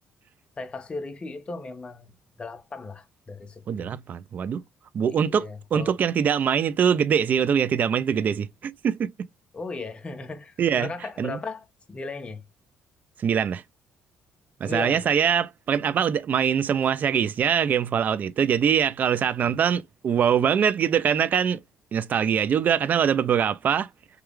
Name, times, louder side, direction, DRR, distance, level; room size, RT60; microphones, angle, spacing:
voice 1, 0.6-3.9 5.1-6.0 9.5-12.4 14.6-15.0 19.4-19.6, left 3 dB, 25° left, 0.7 m, -37 dB
voice 2, 3.7-4.6 4.9-9.1 10.6-10.9 11.2-11.4 13.2-13.6 14.6-21.6 21.9-23.9, right 8 dB, 45° right, 0.4 m, -23 dB
3.1 x 2.3 x 3.5 m
cardioid pair, 125°, 4 cm